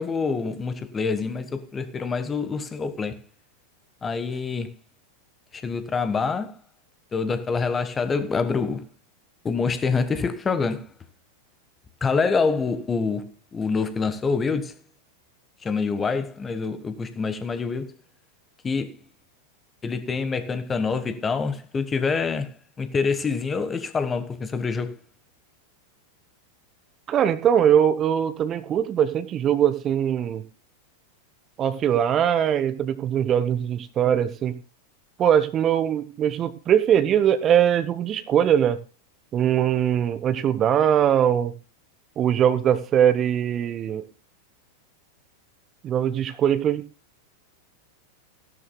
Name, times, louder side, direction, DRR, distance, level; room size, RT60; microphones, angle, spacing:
voice 1, 0.0-3.2 4.0-4.7 5.5-6.6 7.1-8.9 9.4-10.9 12.0-14.7 15.6-18.0 18.6-19.0 19.8-25.0, left 4 dB, 20° left, 1.4 m, -26 dB
voice 2, 27.1-30.4 31.6-34.5 35.2-38.8 39.3-41.5 42.2-44.0 45.8-46.8, right 9 dB, 30° right, 1.0 m, -21 dB
17.0 x 12.5 x 2.3 m
figure-of-eight pair, 90°, 0 cm